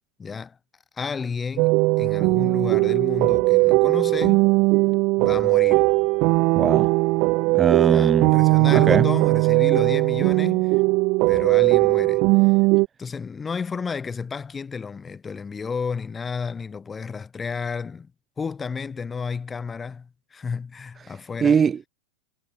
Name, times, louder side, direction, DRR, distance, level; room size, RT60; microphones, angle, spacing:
voice 1, 0.2-0.6 1.0-4.5 5.2-5.9 7.9-10.8 11.3-12.5 13.0-18.1 18.4-21.6, left 5 dB, 20° left, 5.3 m, -32 dB
sound 1, 1.6-12.9, right 25 dB, 50° right, 0.9 m, -19 dB
voice 2, 6.5-6.9 7.5-8.4 8.7-9.1 21.1-21.2 21.4-21.9, right 7 dB, 25° right, 1.4 m, -21 dB
hypercardioid pair, 95°, 0 cm